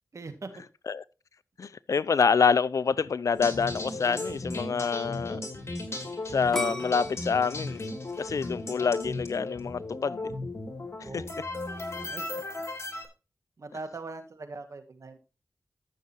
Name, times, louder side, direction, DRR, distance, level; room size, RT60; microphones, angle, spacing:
voice 1, 0.1-0.7 1.6-1.8 11.0-11.3 12.0-12.4 13.6-15.2, right 3 dB, 65° right, 1.9 m, -41 dB
voice 2, 1.6-5.4 6.3-7.9 8.2-10.3 11.1-11.2, left 5 dB, 70° left, 0.5 m, -26 dB
sound 1, 3.3-13.1, left 2 dB, 50° left, 3.1 m, -36 dB
sound 2, 6.5-9.4 9.9-10.4, equal, 5° left, 2.1 m, -37 dB
13.5 x 6.6 x 2.9 m
cardioid pair, 40°, 6 cm